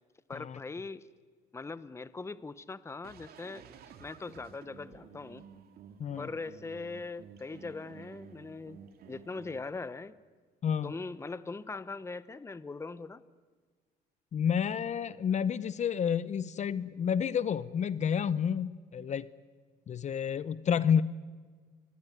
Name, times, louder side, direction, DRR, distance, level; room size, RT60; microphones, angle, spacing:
voice 1, 0.3-1.0 1.5-3.6 4.0-5.5 6.2-8.8 9.1-10.2 10.8-13.2, left 3 dB, 15° left, 15 dB, 0.9 m, -41 dB
sound 1, 3.0-9.6, right 7 dB, 65° right, 2.6 m, -52 dB
voice 2, 10.6-10.9 14.3-19.3 19.9-21.0, left 8 dB, 45° left, 16 dB, 0.8 m, -30 dB
28.5 x 21.5 x 9.7 m, 1.5 s
cardioid pair, 110°, 17 cm